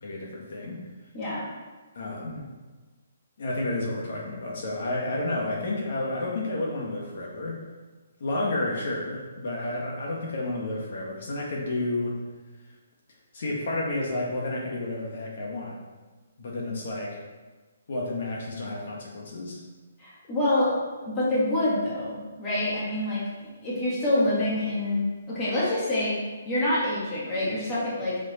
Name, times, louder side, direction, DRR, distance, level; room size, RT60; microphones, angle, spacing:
voice 1, 0.0-0.8 1.9-2.4 3.4-7.6 8.2-12.2 13.3-15.8 16.4-17.2 17.9-19.6, left 2 dB, 45° left, -2 dB, 1.6 m, -31 dB
voice 2, 1.1-1.5 20.0-23.2 23.6-26.2 26.5-28.2, left 1 dB, 15° left, -8 dB, 1.9 m, -26 dB
6.8 x 6.3 x 4.3 m, 1.3 s
hypercardioid pair, 175°, 0 cm